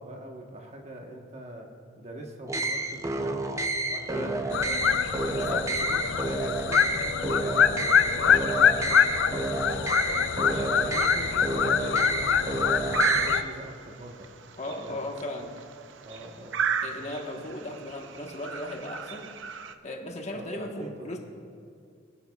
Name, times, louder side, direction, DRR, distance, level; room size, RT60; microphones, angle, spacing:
voice 1, 0.0-1.7 2.0-3.5 3.9-4.5 5.6-6.1 6.4-9.6 10.3-14.3 14.7-15.0 16.0-16.6 17.3-17.4 20.3-20.4 20.8-21.1, right 1 dB, 35° right, 1 dB, 1.2 m, -43 dB
sound 1, 2.5-13.4, right 2 dB, 15° right, 0.5 m, -30 dB
sound 2, 4.5-13.4, left 7 dB, 75° left, 0.5 m, -25 dB
sound 3, 9.9-19.7, right 6 dB, 70° right, 0.6 m, -35 dB
voice 2, 14.6-15.5 16.8-19.3 19.8-21.2, left 1 dB, 35° left, 1 dB, 1.3 m, -36 dB
25.5 x 10.5 x 2.4 m, 2.3 s
head